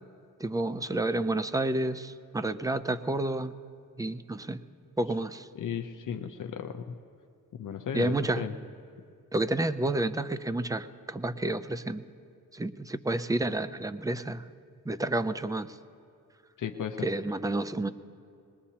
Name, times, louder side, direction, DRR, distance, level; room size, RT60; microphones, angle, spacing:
voice 1, 0.4-3.5 4.0-4.6 5.0-5.5 7.9-8.4 9.3-12.0 12.5-14.5 14.9-15.7 17.0-17.9, right 2 dB, 10° right, 13 dB, 0.4 m, -30 dB
voice 2, 5.5-7.0 7.5-8.5 16.6-17.1, left 8 dB, 60° left, 6 dB, 0.7 m, -35 dB
21.5 x 20.5 x 2.9 m, 2.4 s
wide cardioid pair, 115°, 35 cm